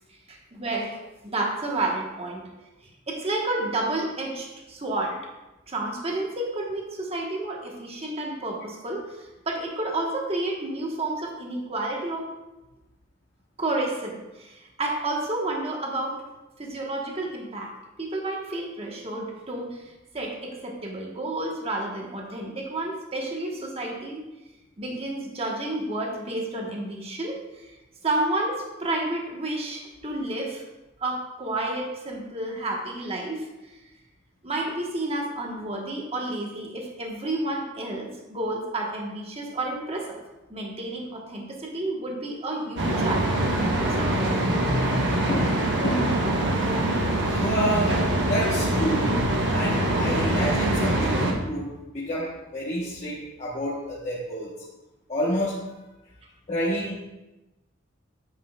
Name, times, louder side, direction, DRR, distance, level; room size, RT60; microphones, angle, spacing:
voice 1, 0.3-2.5 3.1-5.2 5.7-9.2 9.5-12.3 13.6-16.2 16.6-17.7 18.0-24.2 24.8-27.7 28.0-30.6 31.0-33.5 34.4-40.2 40.5-44.5, right 2 dB, 30° right, 0 dB, 1.2 m, -30 dB
sound 1, 42.8-51.3, right 1 dB, 65° right, 1.2 m, -24 dB
voice 2, 45.3-46.3 47.3-49.2 49.5-54.5 55.1-55.7 56.5-57.0, equal, 35° left, -6 dB, 1.0 m, -29 dB
9.1 x 7.6 x 2.3 m, 1.0 s
head